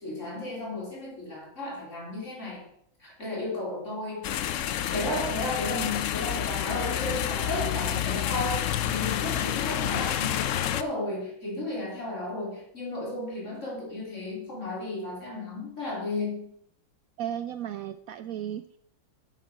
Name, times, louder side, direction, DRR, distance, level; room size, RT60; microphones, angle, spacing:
voice 1, 0.0-2.7 3.0-4.3 4.9-16.5, left 2 dB, 40° left, -3 dB, 4.1 m, -34 dB
sound 1, 4.2-10.8, left 10 dB, 85° left, 0.6 m, -29 dB
voice 2, 5.1-5.5 17.2-18.8, right 10 dB, 80° right, 10 dB, 0.7 m, -35 dB
8.6 x 8.2 x 5.9 m, 0.69 s
omnidirectional pair, 2.0 m